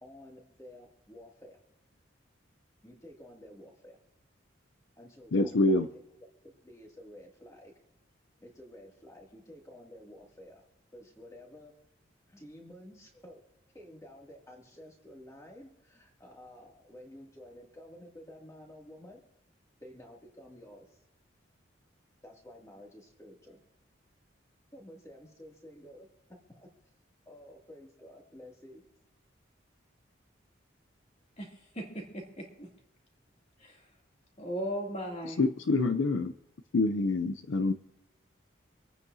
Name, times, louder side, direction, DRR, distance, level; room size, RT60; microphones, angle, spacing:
voice 1, 0.0-1.6 2.8-4.0 5.0-5.8 6.6-7.7 8.4-10.6 10.9-11.7 12.3-13.4 13.7-19.2 19.8-20.9 22.2-23.6 24.7-26.7 27.3-28.8, left 1 dB, 15° left, -1 dB, 2.3 m, -51 dB
voice 2, 5.3-5.9 35.2-36.3 36.7-37.7, left 2 dB, 70° left, 8 dB, 0.5 m, -26 dB
voice 3, 31.7-32.7 33.6-33.8 34.4-35.4, equal, 35° left, -1 dB, 2.8 m, -37 dB
26.5 x 9.3 x 2.7 m, 0.92 s
head